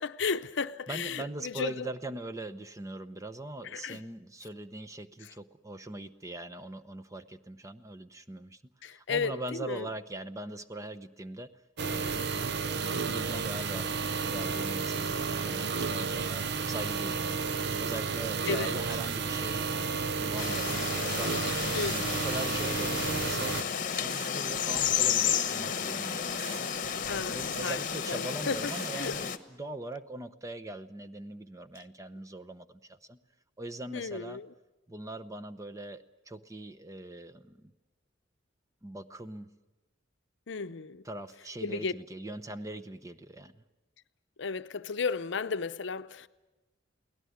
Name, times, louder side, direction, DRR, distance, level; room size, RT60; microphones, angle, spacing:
voice 1, 0.0-1.9 3.7-4.0 8.8-9.9 18.5-18.8 21.7-22.2 27.1-27.8 28.1-29.2 33.9-34.5 40.5-41.0 41.6-41.9 44.4-46.3, left 5 dB, 65° left, 0.7 m, -34 dB
voice 2, 0.9-8.6 8.9-11.5 11.8-12.3 12.9-13.9 14.2-19.7 20.1-21.4 21.8-23.6 23.9-26.7 27.3-33.2 33.6-34.4 34.9-37.7 38.8-39.5 41.0-43.6, right 2 dB, 15° right, 0.8 m, -41 dB
sound 1, 11.8-23.6, right 5 dB, 60° right, 0.8 m, -32 dB
sound 2, 20.1-29.2, right 5 dB, 85° right, 1.0 m, -50 dB
sound 3, 20.4-29.4, left 8 dB, 45° left, 1.1 m, -32 dB
23.0 x 17.5 x 9.5 m
head